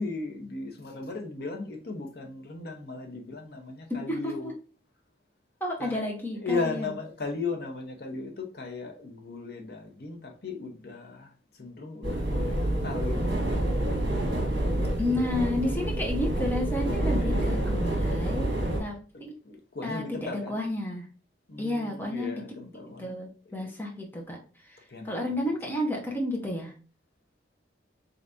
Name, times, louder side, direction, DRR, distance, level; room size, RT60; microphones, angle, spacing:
voice 1, 0.0-4.5 5.8-6.1 6.3-13.8 17.2-17.8 19.4-20.6 21.5-23.1 23.5-23.7 24.9-25.4, left 3 dB, 55° left, 0.7 m, -37 dB
voice 2, 3.9-4.5 5.6-6.9 15.0-18.5 18.8-19.3 19.8-21.1 21.6-22.4 23.0-24.4 24.6-24.8 25.0-26.7, left 1 dB, 10° left, 0.7 m, -31 dB
sound 1, 12.0-18.8, right 1 dB, 60° right, 1.5 m, -27 dB
3.9 x 3.4 x 2.5 m
head